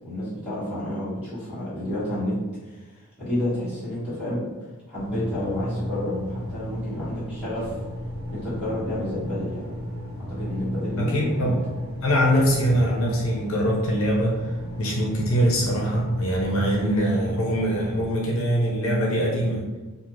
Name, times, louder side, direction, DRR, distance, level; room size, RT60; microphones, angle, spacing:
voice 1, 0.0-2.4 2.6-4.5 4.9-7.7 8.2-9.7 10.3-11.5, left 1 dB, 5° right, -12 dB, 1.2 m, -30 dB
sound 1, 4.9-18.1, equal, 75° right, 0.6 m, -34 dB
voice 2, 11.0-11.6 12.0-14.5 14.8-19.6, equal, 65° left, -2 dB, 0.5 m, -23 dB
2.4 x 2.4 x 3.0 m, 1.2 s
head